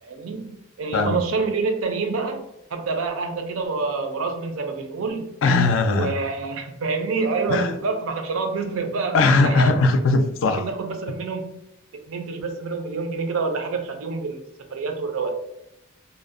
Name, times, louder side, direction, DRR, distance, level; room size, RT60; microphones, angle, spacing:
voice 1, 0.0-2.5 2.7-5.3 5.9-9.7 10.6-11.5 12.1-14.4 14.7-15.3, right 4 dB, 80° right, 0.4 m, -27 dB
voice 2, 5.4-6.1 7.5-7.7 9.1-10.7, left 3 dB, 65° left, 0.3 m, -19 dB
2.6 x 2.0 x 2.4 m
head